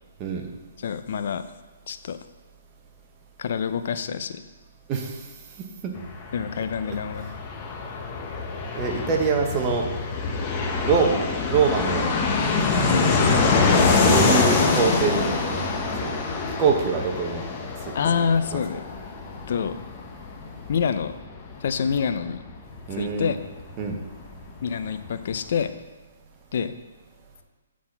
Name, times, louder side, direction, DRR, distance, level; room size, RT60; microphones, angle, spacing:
voice 1, 0.8-1.4 1.9-2.2 3.4-4.4 6.3-7.3 12.9-13.1 17.9-18.8 19.5-19.8 20.7-21.1 21.6-22.4 23.0-23.4 24.6-25.7 26.5-26.7, left 6 dB, 55° left, 11 dB, 0.5 m, -26 dB
voice 2, 4.9-5.2 5.8-5.9 6.5-7.0 8.7-9.9 10.8-12.1 12.7-13.5 14.0-15.6 16.0-16.2 16.6-17.4 18.0-18.1 18.5-18.6 22.9-23.4 23.8-24.0, right 5 dB, 25° right, 1 dB, 1.1 m, -25 dB
Fixed-wing aircraft airplane, 5.9-24.3 24.6-24.7 24.9-25.6, left 4 dB, 25° left, 0.9 m, -25 dB
7.5 x 4.2 x 5.8 m, 1.2 s
hypercardioid pair, 150°, 0 cm